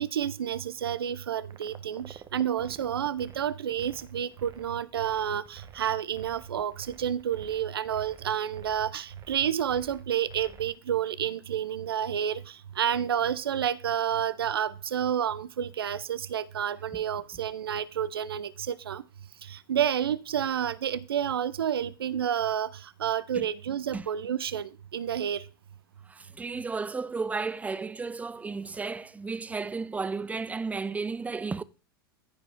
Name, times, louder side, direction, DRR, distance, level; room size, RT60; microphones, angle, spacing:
voice 1, 0.0-19.0 19.4-25.5, right 9 dB, 85° right, 0.6 m, -30 dB
sound 1, 1.4-10.8, right 7 dB, 30° right, 1.1 m, -51 dB
voice 2, 26.1-31.6, right 4 dB, 10° right, 0.5 m, -33 dB
14.5 x 4.9 x 3.5 m
hypercardioid pair, 95°, 12 cm